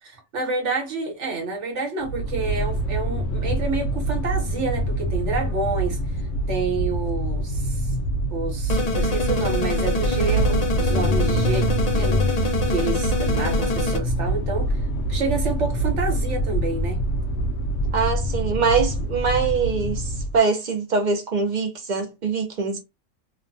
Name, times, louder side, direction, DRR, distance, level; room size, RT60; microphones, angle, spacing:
voice 1, 0.0-6.0 6.5-7.9 8.3-11.6 12.0-14.8 15.1-17.0, right 4 dB, 70° right, 1.2 m, -29 dB
sound 1, 2.0-20.4, right 1 dB, 75° left, 1.0 m, -25 dB
sound 2, 8.7-14.0, left 3 dB, 45° left, 0.5 m, -25 dB
voice 2, 17.9-22.8, right 5 dB, 55° right, 0.5 m, -23 dB
2.9 x 2.1 x 2.5 m
omnidirectional pair, 1.3 m